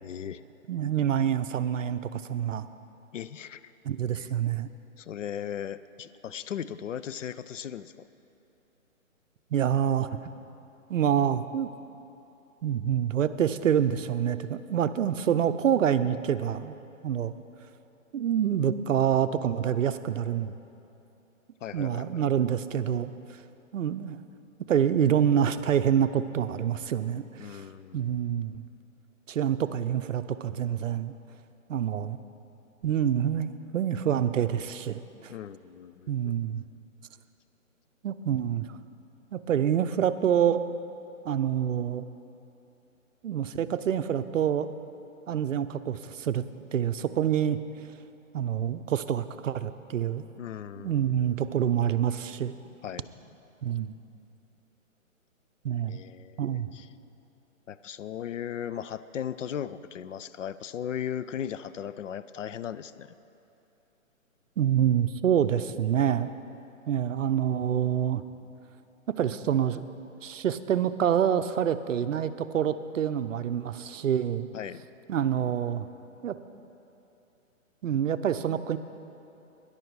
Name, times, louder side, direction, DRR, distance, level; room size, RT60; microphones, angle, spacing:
voice 1, 0.0-0.4 3.1-3.6 4.2-4.3 5.0-8.1 21.6-22.2 27.4-28.3 35.3-36.3 50.4-51.5 52.8-53.1 55.9-56.9 57.7-63.1 74.5-74.8, left 9 dB, 65° left, 14 dB, 0.5 m, -37 dB
voice 2, 0.7-2.7 3.8-4.7 9.5-10.3 10.9-11.7 12.6-16.7 17.0-17.3 18.1-20.6 21.7-23.1 23.7-24.2 24.7-27.6 27.9-28.6 29.3-31.1 31.7-32.2 32.8-35.3 36.1-36.6 38.0-38.7 39.3-40.6 41.2-42.0 43.2-44.7 45.3-46.4 46.7-47.6 48.3-50.2 50.8-52.5 53.6-53.9 55.6-56.0 56.4-56.7 64.6-66.3 66.9-68.2 69.1-69.9 70.2-74.5 75.1-75.9 76.2-76.4 77.8-78.8, right 9 dB, 65° right, 11 dB, 0.6 m, -27 dB
13.0 x 10.5 x 4.7 m, 2.8 s
hypercardioid pair, 160°, 41 cm